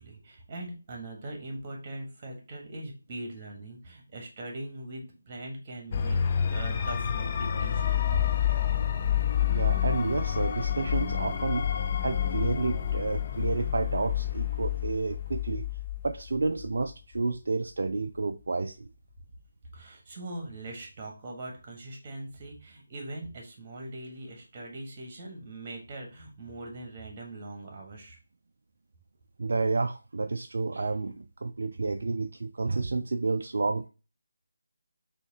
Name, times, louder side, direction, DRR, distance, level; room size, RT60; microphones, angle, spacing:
voice 1, 0.0-6.2 6.5-8.2 19.7-28.2, right 2 dB, 25° right, 1.4 m, -41 dB
sound 1, 5.9-16.9, left 9 dB, 30° left, 0.4 m, -29 dB
voice 2, 9.5-11.6 12.0-15.7 16.0-18.9 29.4-33.9, right 3 dB, 55° right, 0.3 m, -30 dB
6.3 x 2.8 x 2.8 m
figure-of-eight pair, 155°, 0 cm